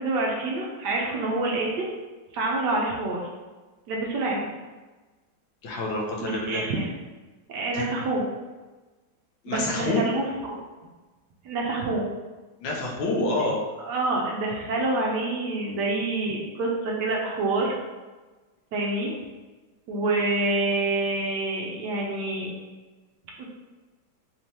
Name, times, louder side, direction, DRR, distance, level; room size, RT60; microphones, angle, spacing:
voice 1, 0.0-1.9 2.3-3.2 3.9-4.5 6.2-6.8 7.5-8.2 9.5-10.6 11.4-12.1 13.8-17.8 18.7-19.1 19.9-22.5 23.4-23.5, right 2 dB, 70° right, -2 dB, 1.1 m, -27 dB
voice 2, 5.6-6.6 7.7-7.9 9.4-10.0 12.6-13.6, left 2 dB, 80° left, -2 dB, 1.5 m, -27 dB
4.3 x 3.2 x 2.7 m, 1.2 s
omnidirectional pair, 2.1 m